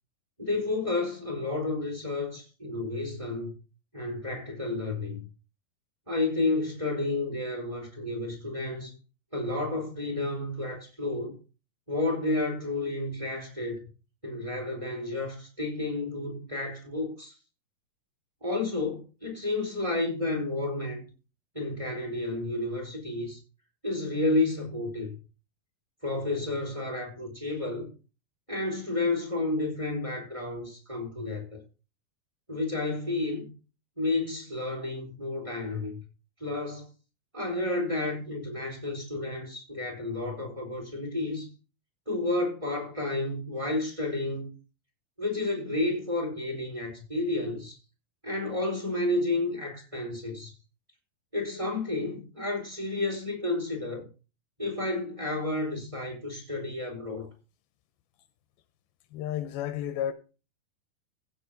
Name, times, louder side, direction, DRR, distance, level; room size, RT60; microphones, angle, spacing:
voice 1, 0.4-3.5 3.9-5.2 6.1-8.9 9.3-11.4 11.9-13.8 14.2-17.3 18.4-21.0 21.5-23.4 23.8-25.1 26.0-27.9 28.5-31.6 32.5-33.5 34.0-36.0 36.4-36.9 37.3-41.5 42.1-44.5 45.2-47.8 48.2-50.5 51.3-54.1 54.6-57.3, left 2 dB, 10° right, 4.1 m, -31 dB
voice 2, 59.1-60.1, left 10 dB, 85° left, 2.6 m, -31 dB
16.5 x 5.5 x 5.1 m
omnidirectional pair, 4.4 m